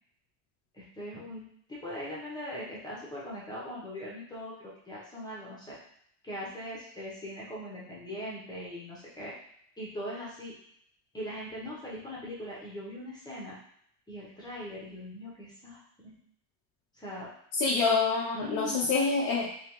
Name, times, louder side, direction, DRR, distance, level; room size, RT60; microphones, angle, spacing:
voice 1, 0.7-4.5 4.9-5.8 6.2-9.3 9.8-10.5 11.1-13.6 14.1-16.2 17.0-17.3 18.3-18.9, equal, 10° left, -6 dB, 0.9 m, -40 dB
voice 2, 17.6-19.5, left 4 dB, 75° left, -3 dB, 0.7 m, -26 dB
3.4 x 3.0 x 3.0 m, 0.68 s
cardioid pair, 160°, 45 cm